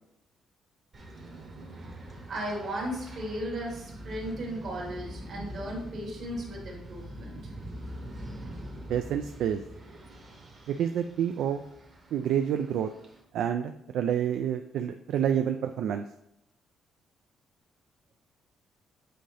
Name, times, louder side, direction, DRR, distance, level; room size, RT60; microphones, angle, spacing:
sound 1, 0.9-13.2, equal, 30° right, 1.1 m, -44 dB
voice 1, 2.3-7.5, right 1 dB, 45° right, -2 dB, 1.8 m, -36 dB
voice 2, 8.9-9.6 10.7-11.6 12.1-12.9 13.3-16.0, right 9 dB, 65° right, 7 dB, 0.3 m, -28 dB
7.7 x 3.8 x 3.3 m, 0.80 s
cardioid pair, 180°, 0 cm